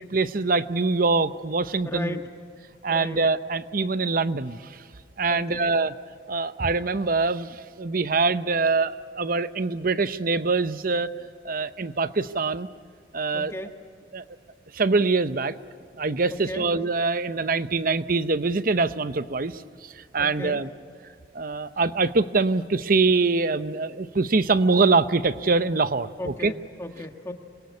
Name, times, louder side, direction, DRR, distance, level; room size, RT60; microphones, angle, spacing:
voice 1, 0.1-2.2 2.8-4.7 5.2-5.9 6.3-11.1 11.4-12.7 13.1-13.5 14.1-14.2 14.7-15.5 16.0-19.6 20.0-20.7 21.3-26.1 26.4-26.5, right 3 dB, 50° right, 13 dB, 0.7 m, -24 dB
voice 2, 1.8-2.3 2.9-3.2 5.3-5.7 13.3-13.7 16.3-16.7 20.2-20.6 26.2-27.3, left 1 dB, 15° left, 4 dB, 1.5 m, -35 dB
27.0 x 22.0 x 9.6 m, 2.1 s
head